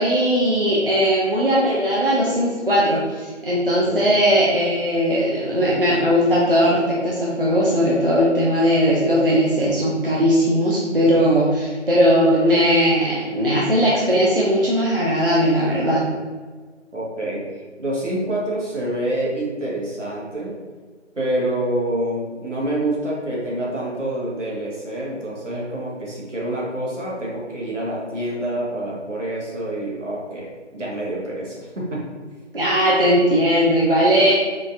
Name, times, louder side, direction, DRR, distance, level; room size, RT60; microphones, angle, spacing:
voice 1, 0.0-16.1 32.5-34.3, equal, 50° right, -6 dB, 0.5 m, -18 dB
voice 2, 3.8-4.2 16.9-17.4 17.8-20.6 21.2-32.0, right 1 dB, 75° right, -5 dB, 1.3 m, -27 dB
3.7 x 2.4 x 2.6 m, 1.4 s
figure-of-eight pair, 175°, 37 cm